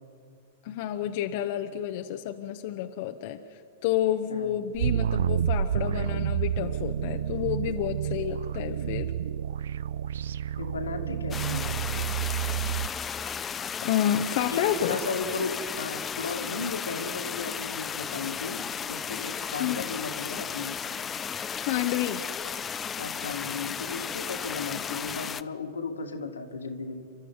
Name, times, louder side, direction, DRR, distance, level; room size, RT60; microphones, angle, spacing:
voice 1, 0.6-9.1 13.8-15.0 19.6-19.9 21.6-22.2, left 11 dB, 55° left, 5 dB, 1.1 m, -30 dB
voice 2, 4.3-4.7 10.6-12.1 14.5-20.8 23.0-27.0, left 4 dB, 85° left, 4 dB, 2.2 m, -35 dB
sound 1, 4.7-12.9, right 9 dB, 75° right, 0.5 m, -29 dB
sound 2, 11.3-25.4, left 7 dB, 25° left, 0.7 m, -34 dB
29.0 x 12.0 x 9.6 m, 2.4 s
hypercardioid pair, 105°, 0 cm